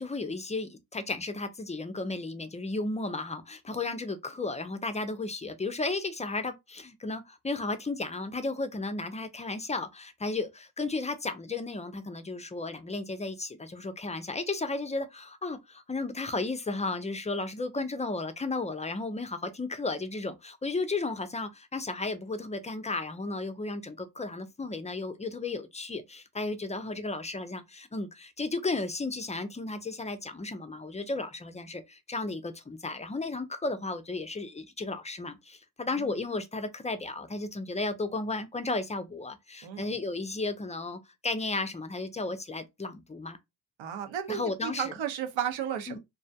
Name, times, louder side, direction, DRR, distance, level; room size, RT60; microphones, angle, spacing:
voice 1, 0.0-43.4 44.3-44.9 45.9-46.0, left 3 dB, 15° left, 0.4 m, -34 dB
voice 2, 43.8-46.0, right 9 dB, 65° right, 0.7 m, -33 dB
2.3 x 2.1 x 2.6 m
supercardioid pair, 50°, 49 cm